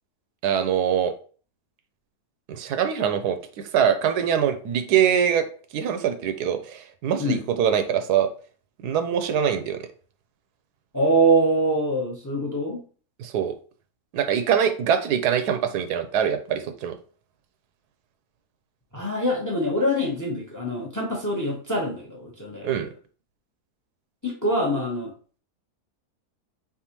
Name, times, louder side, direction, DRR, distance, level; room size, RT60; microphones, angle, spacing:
voice 1, 0.4-1.1 2.5-3.4 3.7-5.5 5.7-8.3 8.8-9.8 13.2-13.5 14.1-17.0 22.6-22.9, right 8 dB, 90° right, 8 dB, 1.2 m, -23 dB
voice 2, 10.9-12.8 18.9-22.9 24.2-25.1, right 1 dB, 15° left, 0 dB, 0.6 m, -24 dB
3.9 x 3.6 x 2.9 m, 0.41 s
omnidirectional pair, 1.7 m